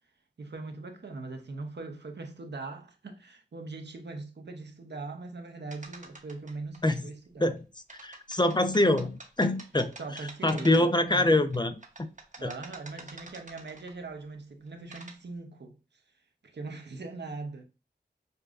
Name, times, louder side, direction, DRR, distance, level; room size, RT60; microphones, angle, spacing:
voice 1, 0.4-7.5 10.0-11.3 12.4-15.8 16.4-17.6, right 3 dB, 70° right, 0.8 m, -41 dB
sound 1, 5.7-6.8 7.9-11.1 11.5-14.1 14.7-15.2, right 3 dB, 45° right, 0.9 m, -48 dB
voice 2, 8.0-12.1 12.4-12.5, left 1 dB, 25° left, 0.5 m, -25 dB
6.6 x 2.3 x 2.4 m
cardioid pair, 40°, 18 cm